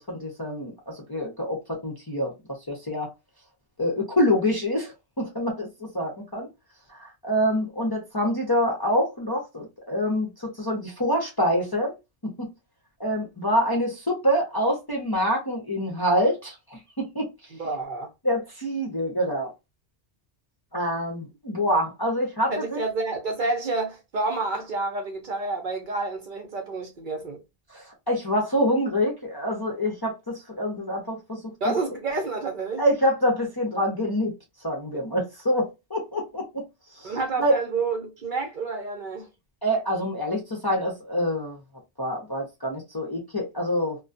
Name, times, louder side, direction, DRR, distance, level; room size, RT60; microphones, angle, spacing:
voice 1, 0.0-3.1 3.8-5.7 5.9-6.5 6.9-12.0 12.2-12.5 13.0-17.3 18.2-19.5 20.7-22.8 27.7-31.7 32.8-34.3 34.6-36.7 37.0-37.1 37.4-37.6 39.6-41.6 42.0-44.0, equal, 25° left, 0.6 m, -26 dB
voice 2, 17.6-18.1 22.5-27.4 31.6-32.8 34.9-35.0 37.0-39.3, right 3 dB, 55° right, 0.7 m, -29 dB
2.2 x 2.2 x 2.5 m
omnidirectional pair, 1.1 m